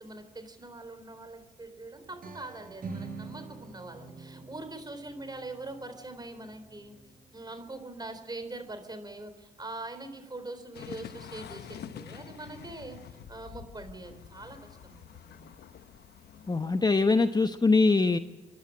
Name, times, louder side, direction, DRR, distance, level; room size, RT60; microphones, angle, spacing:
voice 1, 0.0-6.9 7.3-13.0 13.3-15.5, right 2 dB, 25° right, 8 dB, 4.1 m, -43 dB
sound 1, 2.0-7.7, right 4 dB, 55° right, 4.6 m, -46 dB
sound 2, 10.7-17.1, left 9 dB, 70° left, 1.0 m, -47 dB
voice 2, 16.5-18.2, left 3 dB, 25° left, 10 dB, 0.9 m, -23 dB
27.5 x 11.0 x 8.7 m, 1.1 s
supercardioid pair, 55°, 18 cm